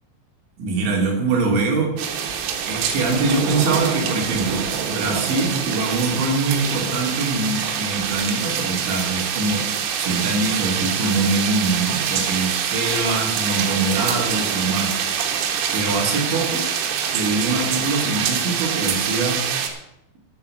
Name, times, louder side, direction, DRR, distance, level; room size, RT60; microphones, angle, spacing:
voice 1, 0.6-2.0 2.7-9.7 10.0-15.3 15.7-16.7 17.1-19.5, right 3 dB, 60° right, 0 dB, 4.6 m, -23 dB
sound 1, 2.0-19.7, right 8 dB, 85° right, 4.2 m, -25 dB
10.5 x 9.6 x 6.4 m, 0.80 s
omnidirectional pair, 6.0 m